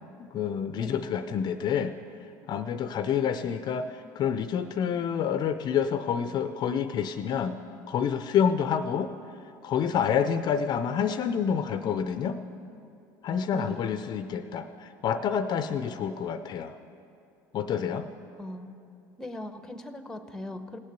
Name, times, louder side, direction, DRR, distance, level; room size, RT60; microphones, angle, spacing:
voice 1, 0.2-1.9 2.5-7.6 7.9-9.1 9.6-12.4 13.2-16.7 17.5-18.1, left 7 dB, 45° left, 10 dB, 0.5 m, -28 dB
voice 2, 13.5-13.8 18.4-18.7 19.2-20.8, left 1 dB, 5° left, 9 dB, 0.8 m, -39 dB
17.5 x 6.5 x 6.8 m, 2.7 s
supercardioid pair, 95°, 10 cm